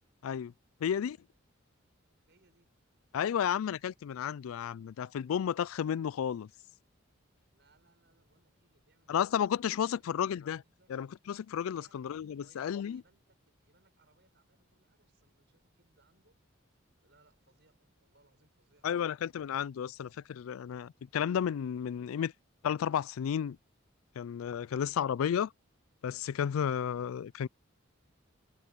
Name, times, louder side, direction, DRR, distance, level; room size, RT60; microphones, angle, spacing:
voice 1, 0.2-0.5 0.8-1.2 3.1-6.5 9.1-10.6 10.9-13.0 18.8-22.3 22.6-23.6 24.2-25.5 26.0-27.5, left 8 dB, 85° left, 0.3 m, -32 dB
voice 2, 0.8-1.4 2.3-2.8 7.5-10.2 10.6-10.9 11.7-16.4 17.0-19.1, right 2 dB, 55° right, 7.3 m, -70 dB
head